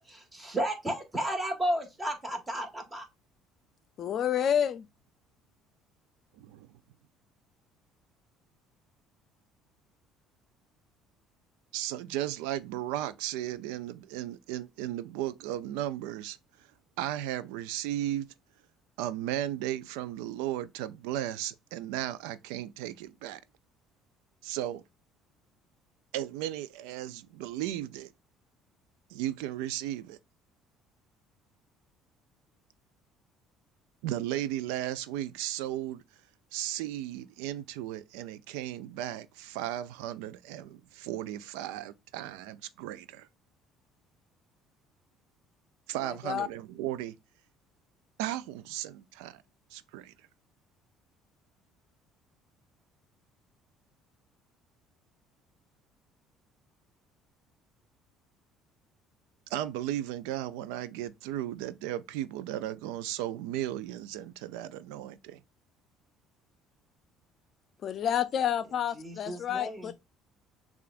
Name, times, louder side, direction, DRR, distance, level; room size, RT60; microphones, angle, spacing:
voice 1, 0.0-3.1 68.9-69.9, right 1 dB, 15° right, 1.7 m, -33 dB
voice 2, 4.0-4.9 46.0-46.5 67.8-69.9, left 9 dB, 50° left, 0.5 m, -29 dB
voice 3, 6.4-6.7 11.7-16.4 17.0-18.3 19.0-23.4 24.4-24.8 26.1-28.1 29.1-30.2 34.0-36.0 36.5-43.3 45.9-47.1 48.2-49.4 49.7-50.1 59.5-65.4, right 13 dB, 90° right, 0.4 m, -35 dB
6.7 x 2.5 x 2.4 m
supercardioid pair, 100°, 0 cm